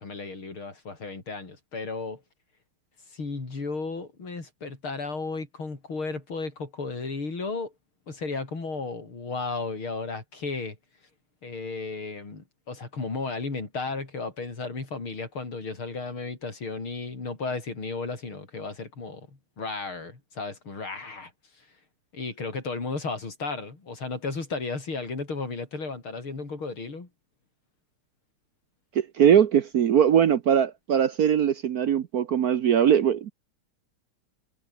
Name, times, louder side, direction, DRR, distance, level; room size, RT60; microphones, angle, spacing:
voice 1, 0.0-2.2 3.1-7.7 8.1-10.8 11.4-21.7 22.1-27.1, left 3 dB, 80° left, 5.7 m, -34 dB
voice 2, 28.9-33.3, right 9 dB, 60° right, 1.1 m, -21 dB
omnidirectional pair, 2.3 m